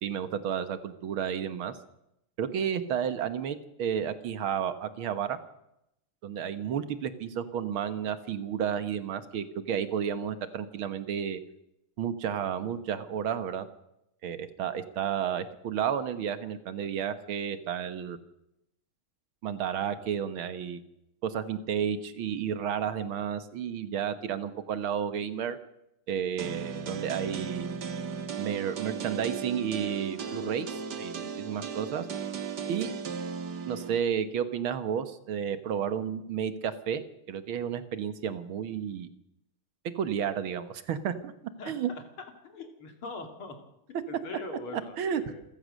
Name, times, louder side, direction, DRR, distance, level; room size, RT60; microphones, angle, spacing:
voice 1, 0.0-1.7 2.4-5.4 6.2-11.4 12.0-13.7 14.2-18.2 19.4-20.8 21.2-25.6 26.1-27.8 28.4-32.1 32.7-32.9 33.7-37.0 37.3-39.1 40.0-41.3 41.7-41.9 45.0-45.2, right 8 dB, 75° right, 12 dB, 2.0 m, -32 dB
sound 1, 26.4-34.0, right 6 dB, 55° right, 1.9 m, -36 dB
voice 2, 41.6-43.6 44.1-45.5, left 3 dB, 80° left, 5 dB, 3.5 m, -42 dB
27.5 x 15.0 x 6.5 m, 0.84 s
omnidirectional pair, 2.3 m